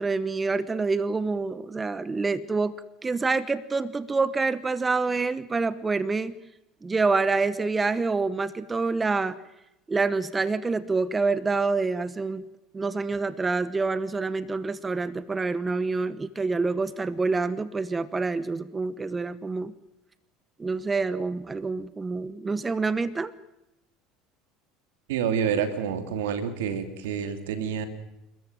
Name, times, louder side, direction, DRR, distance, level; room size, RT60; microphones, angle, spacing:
voice 1, 0.0-2.7 3.0-6.4 6.8-9.4 9.9-12.4 12.7-19.7 20.6-23.3, right 4 dB, 20° right, 16 dB, 1.1 m, -27 dB
voice 2, 25.1-27.9, right 7 dB, 80° right, 9 dB, 2.8 m, -28 dB
29.0 x 14.0 x 9.1 m, 0.88 s
hypercardioid pair, 85°, 0 cm